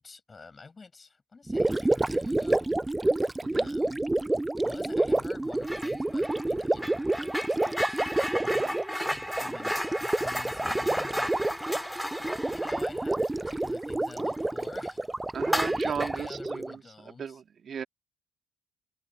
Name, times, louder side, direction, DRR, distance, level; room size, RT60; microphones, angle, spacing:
voice 1, 0.0-2.7 3.5-4.0 4.3-8.6 9.4-11.9 12.5-15.1 15.5-17.4, left 4 dB, 30° left, 6.7 m, -49 dB
Gurgling, 1.5-16.8, right 2 dB, 15° right, 0.3 m, -29 dB
voice 2, 3.4-3.8 8.6-8.8 15.3-17.8, right 7 dB, 45° right, 2.1 m, -37 dB
sound 1, 5.6-6.0 6.2-14.4 14.7-14.9 15.4-16.3, equal, 5° left, 2.4 m, -34 dB
hypercardioid pair, 55°, 0 cm